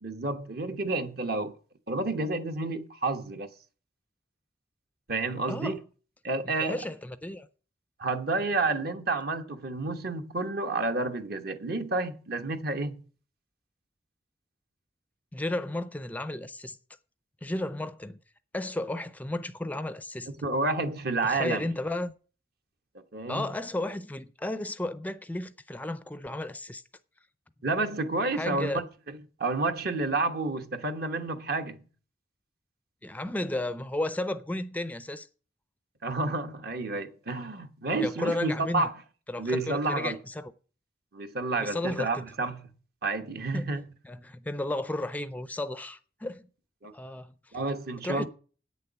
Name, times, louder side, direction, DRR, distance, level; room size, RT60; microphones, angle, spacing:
voice 1, 0.0-1.6 1.9-3.5 5.1-5.8 6.2-6.8 8.0-13.1 20.4-21.7 23.1-23.5 27.6-31.8 36.0-38.9 39.4-40.2 41.1-42.7 43.0-43.9 46.8-46.9 47.5-48.3, right 3 dB, 60° right, 1.1 m, -30 dB
voice 2, 6.6-7.5 15.3-16.8 17.4-18.2 18.5-20.3 21.2-22.1 23.3-26.8 28.3-28.8 33.0-35.3 37.9-38.9 39.3-40.5 41.6-42.2 43.5-43.7 44.0-46.5 46.9-47.3 48.0-48.2, left 1 dB, 10° left, 0.4 m, -33 dB
8.7 x 6.8 x 8.0 m
head